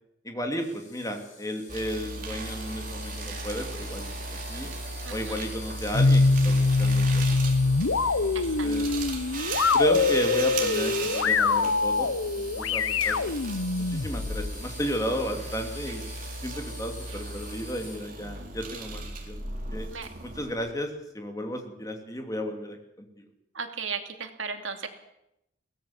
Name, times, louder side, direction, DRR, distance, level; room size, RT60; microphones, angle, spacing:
voice 1, 0.2-4.2 4.5-4.7 5.1-7.4 7.6-7.7 8.0-8.9 9.7-13.3 13.8-16.0 16.4-19.4 19.7-19.9 20.2-23.2, equal, 15° left, 4 dB, 2.8 m, -33 dB
Insect, 0.6-17.9, left 4 dB, 40° left, 6.8 m, -47 dB
sound 1, 1.7-20.7, right 3 dB, 40° right, 3.9 m, -37 dB
sound 2, 5.9-14.5, left 3 dB, 85° left, 0.9 m, -24 dB
voice 2, 8.3-8.7 19.9-20.1 23.5-24.9, right 5 dB, 75° right, 6 dB, 2.5 m, -35 dB
22.5 x 17.5 x 7.3 m, 0.84 s
head